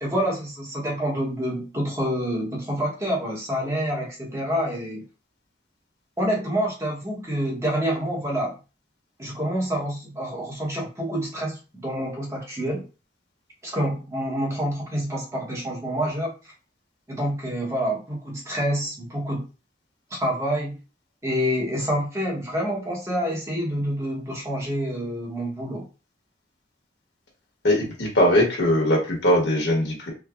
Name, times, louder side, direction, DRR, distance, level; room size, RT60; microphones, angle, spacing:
voice 1, 0.0-5.1 6.2-8.6 9.2-12.8 13.6-16.5 17.1-19.4 20.1-20.8 21.2-25.9, equal, 15° right, -2 dB, 0.9 m, -27 dB
voice 2, 27.6-30.1, left 1 dB, 80° left, -1 dB, 1.0 m, -20 dB
3.2 x 2.1 x 2.3 m, 0.32 s
head